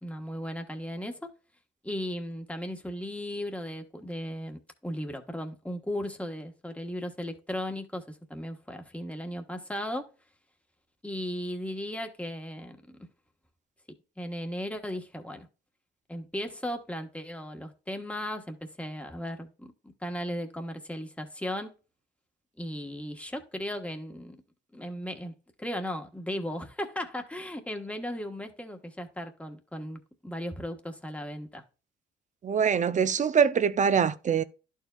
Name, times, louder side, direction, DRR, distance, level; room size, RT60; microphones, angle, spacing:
voice 1, 0.0-1.3 1.8-10.1 11.0-12.8 14.2-15.5 16.1-21.7 22.6-24.4 24.7-25.3 25.6-31.6, equal, 5° left, 1.3 m, -36 dB
voice 2, 32.4-34.4, right 7 dB, 40° right, 0.6 m, -24 dB
11.5 x 4.6 x 2.4 m
cardioid pair, 90°, 20 cm